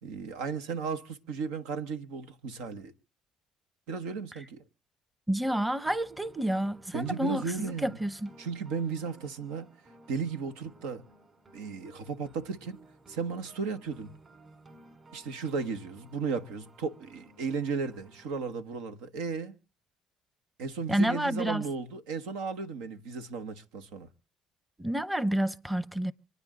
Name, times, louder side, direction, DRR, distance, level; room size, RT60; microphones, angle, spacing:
voice 1, 0.0-2.9 3.9-4.6 6.9-8.0 8.4-9.7 10.1-11.0 11.5-12.8 13.1-14.1 15.1-19.5 20.6-24.1, right 5 dB, 85° right, 1.1 m, -35 dB
voice 2, 5.3-8.3 20.9-21.6 24.8-26.1, right 1 dB, 10° right, 0.8 m, -29 dB
sound 1, 5.5-18.3, right 2 dB, 35° right, 3.8 m, -56 dB
26.5 x 9.6 x 3.7 m
supercardioid pair, 80°, 0 cm